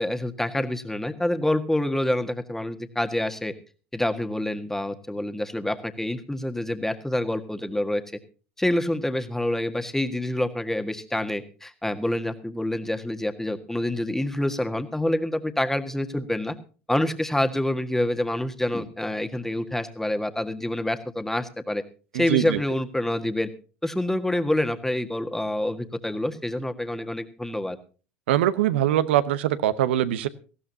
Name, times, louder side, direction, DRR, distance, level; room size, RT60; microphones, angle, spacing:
voice 1, 0.0-3.5 3.9-8.0 8.6-16.5 16.9-21.8 22.1-23.5 23.8-27.8, left 1 dB, 5° left, 8 dB, 1.7 m, -27 dB
voice 2, 28.3-30.3, right 12 dB, 75° right, 14 dB, 0.9 m, -22 dB
18.5 x 15.5 x 2.8 m, 0.36 s
hypercardioid pair, 70°, 6 cm